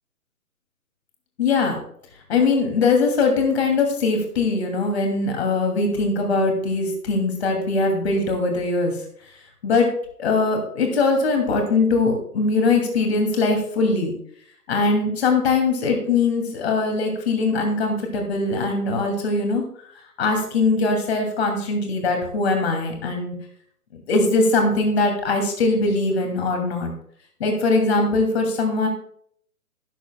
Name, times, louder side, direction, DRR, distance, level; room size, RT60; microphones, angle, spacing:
voice 1, 1.4-1.8 2.3-8.9 9.6-9.9 10.2-14.1 14.7-19.6 20.2-23.3 23.9-26.9 27.4-28.9, left 3 dB, 40° left, 3 dB, 2.5 m, -21 dB
12.5 x 11.0 x 2.2 m, 0.64 s
figure-of-eight pair, 140°, 46 cm